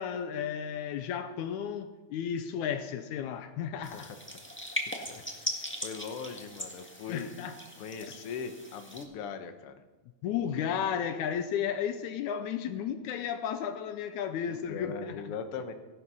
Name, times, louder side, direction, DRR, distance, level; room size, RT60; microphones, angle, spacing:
voice 1, 0.0-4.1 4.9-5.0 7.1-7.6 10.2-15.4, left 8 dB, 80° left, 2.1 m, -33 dB
voice 2, 3.7-4.2 5.0-7.3 7.8-9.7 14.5-15.7, left 6 dB, 60° left, 1.7 m, -40 dB
sound 1, 3.8-9.0, equal, 10° left, 0.7 m, -39 dB
16.5 x 11.5 x 5.5 m
omnidirectional pair, 3.5 m